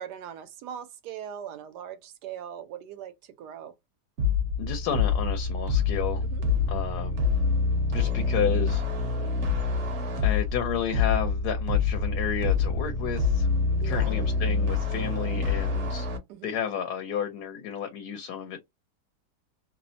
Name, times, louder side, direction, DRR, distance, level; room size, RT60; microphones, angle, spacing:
voice 1, 0.0-3.7 6.2-6.4 13.8-14.2 16.3-16.6, right 9 dB, 80° right, 1.2 m, -40 dB
sound 1, 4.2-16.2, left 4 dB, 55° right, 0.9 m, -26 dB
voice 2, 4.6-6.2 6.7-7.2 7.9-9.9 10.2-13.5 13.8-16.1 16.4-18.6, left 8 dB, 75° left, 1.1 m, -32 dB
2.9 x 2.0 x 2.5 m
omnidirectional pair, 1.8 m